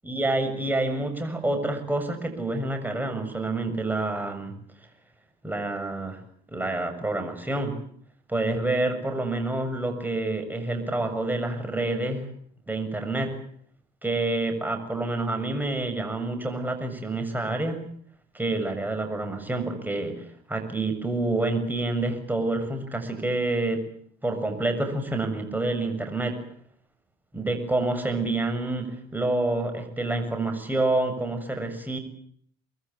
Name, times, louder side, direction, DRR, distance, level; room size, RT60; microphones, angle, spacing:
voice 1, 0.0-4.5 5.4-6.2 6.5-7.8 8.3-12.3 12.7-13.3 14.0-17.8 18.3-23.9 24.2-26.4 27.3-32.0, right 2 dB, 10° right, 6 dB, 7.1 m, -28 dB
25.0 x 20.5 x 8.7 m, 0.62 s
supercardioid pair, 95°, 19 cm